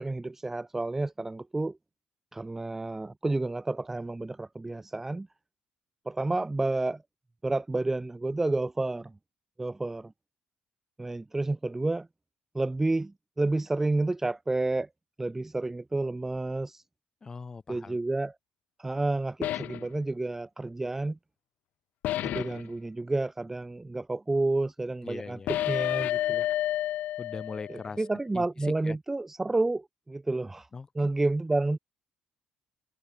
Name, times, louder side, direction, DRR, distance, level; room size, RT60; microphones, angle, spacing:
voice 1, 0.0-1.8 2.3-5.3 6.1-7.0 7.4-9.1 9.6-10.1 11.0-12.1 12.5-14.9 15.2-16.8 17.7-18.3 18.8-21.2 22.2-26.5 27.7-30.7 30.9-31.8, right 2 dB, 10° right, 0.7 m, -30 dB
voice 2, 17.2-18.0 25.0-25.5 27.2-28.1 28.3-29.0 30.7-31.1, left 4 dB, 25° left, 4.1 m, -41 dB
sound 1, 19.4-19.9 22.0-22.7 25.5-27.9, left 14 dB, 70° left, 0.5 m, -30 dB
cardioid pair, 130°, 3 cm